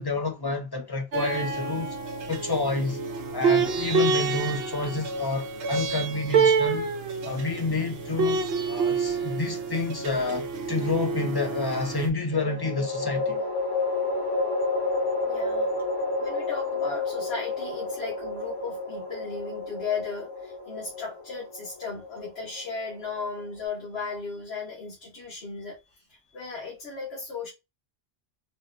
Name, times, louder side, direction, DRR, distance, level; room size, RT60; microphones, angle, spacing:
voice 1, 0.0-2.0 2.3-3.0 3.3-6.9 7.2-13.4, left 3 dB, 25° left, 0.6 m, -29 dB
sound 1, 1.1-12.1, right 4 dB, 75° right, 0.8 m, -27 dB
sound 2, 9.2-10.0 12.3-23.6, left 3 dB, 50° left, 1.8 m, -31 dB
voice 2, 15.2-15.7 16.2-27.5, left 4 dB, 85° left, 1.4 m, -36 dB
4.0 x 2.2 x 2.5 m
omnidirectional pair, 1.0 m